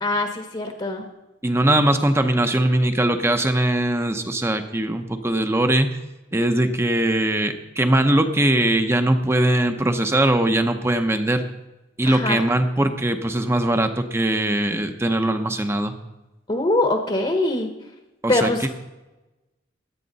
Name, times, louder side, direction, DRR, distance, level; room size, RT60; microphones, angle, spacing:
voice 1, 0.0-1.1 12.1-12.4 16.5-17.7 18.3-18.7, left 2 dB, 25° left, 5 dB, 1.1 m, -23 dB
voice 2, 1.4-5.9 6.3-11.4 12.0-15.9 18.2-18.7, right 1 dB, 15° right, 7 dB, 0.7 m, -21 dB
16.5 x 10.5 x 4.1 m, 1.0 s
head